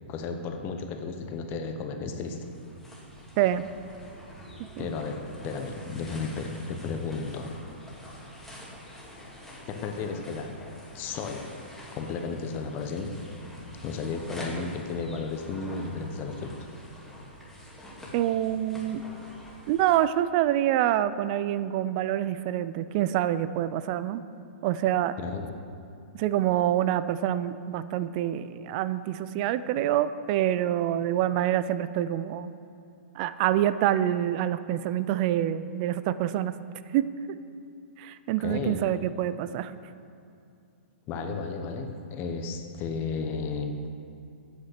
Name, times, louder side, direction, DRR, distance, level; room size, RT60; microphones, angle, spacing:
voice 1, 0.1-2.4 4.8-7.5 9.7-10.5 10.9-11.5 11.9-13.1 13.8-16.5 25.2-25.5 38.4-38.9 41.1-43.9, left 4 dB, 30° left, 6 dB, 1.1 m, -33 dB
sound 1, 2.0-20.0, left 1 dB, 5° left, 2.1 m, -45 dB
voice 2, 18.1-19.0 19.7-24.2 24.6-25.1 26.1-32.5 33.2-36.5 36.9-37.1 38.0-39.7, right 12 dB, 40° right, 14 dB, 0.5 m, -26 dB
8.9 x 7.6 x 6.7 m, 2.5 s
hypercardioid pair, 125°, 6 cm